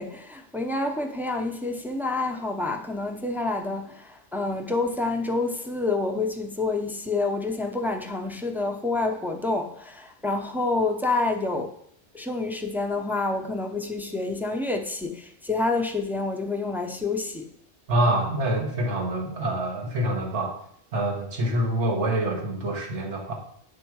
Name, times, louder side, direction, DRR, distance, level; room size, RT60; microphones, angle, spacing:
voice 1, 0.0-11.7 12.1-17.5, left 3 dB, 5° right, 0.3 m, -28 dB
voice 2, 17.9-20.5 20.9-23.3, right 1 dB, 90° right, 1.6 m, -26 dB
8.6 x 3.6 x 4.6 m
omnidirectional pair, 1.2 m